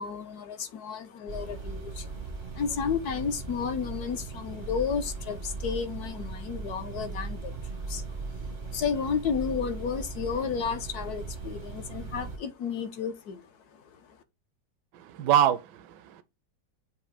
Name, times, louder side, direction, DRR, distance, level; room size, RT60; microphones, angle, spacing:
voice 1, 0.0-13.4, left 6 dB, 65° left, 1.3 m, -32 dB
sound 1, 1.3-12.4, right 4 dB, 45° right, 0.6 m, -38 dB
voice 2, 14.9-16.2, right 10 dB, 80° right, 1.2 m, -25 dB
7.0 x 2.7 x 4.9 m
omnidirectional pair, 1.9 m